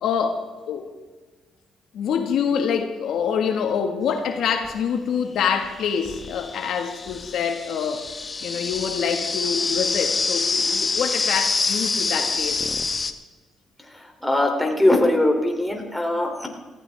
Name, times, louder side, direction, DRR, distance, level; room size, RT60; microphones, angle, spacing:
voice 1, 0.0-0.9 1.9-8.0 8.4-12.6, left 7 dB, 75° left, 5 dB, 1.7 m, -26 dB
sound 1, 4.6-4.7 5.6-13.1, left 4 dB, 35° left, 1.1 m, -26 dB
voice 2, 14.2-16.5, left 1 dB, 5° left, 2 dB, 3.1 m, -20 dB
18.5 x 15.5 x 3.5 m, 1.3 s
cardioid pair, 90°, 0 cm